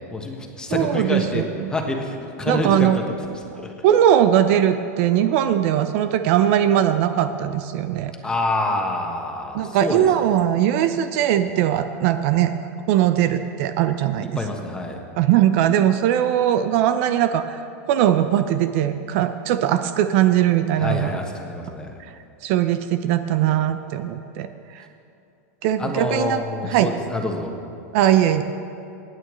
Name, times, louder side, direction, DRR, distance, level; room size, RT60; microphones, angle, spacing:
voice 1, 0.1-1.4 1.7-2.9 3.6-3.7 8.2-10.1 14.3-15.0 20.8-22.0 25.8-27.5, left 2 dB, 10° left, 2 dB, 1.3 m, -27 dB
voice 2, 0.7-1.7 2.5-3.0 3.8-8.1 9.5-12.5 12.9-14.4 15.2-17.6 17.9-21.2 22.4-24.8 25.6-26.9 27.9-28.4, right 11 dB, 55° right, 10 dB, 0.6 m, -20 dB
25.0 x 9.1 x 3.2 m, 2.7 s
supercardioid pair, 140°, 9 cm